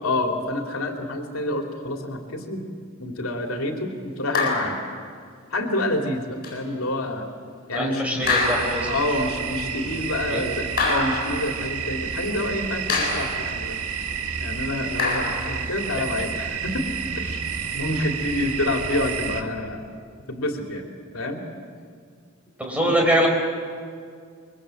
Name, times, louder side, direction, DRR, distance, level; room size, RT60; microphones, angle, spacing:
voice 1, 0.0-2.6 3.0-4.8 5.5-7.3 7.7-8.4 8.9-13.8 14.4-17.4 17.7-19.9 20.3-20.8 21.1-21.4 22.8-22.9, left 1 dB, 75° left, 3 dB, 2.8 m, -28 dB
sound 1, 4.3-4.9 6.4-6.6 8.3-9.0 10.8-11.4 12.9-13.5 15.0-15.6, left 3 dB, 45° left, 7.9 m, -25 dB
voice 2, 7.7-8.9 10.3-10.4 22.6-23.3, equal, 5° right, 0 dB, 4.8 m, -23 dB
sound 2, 8.2-19.4, right 6 dB, 85° right, 1.9 m, -30 dB
27.5 x 23.0 x 7.8 m, 2.1 s
head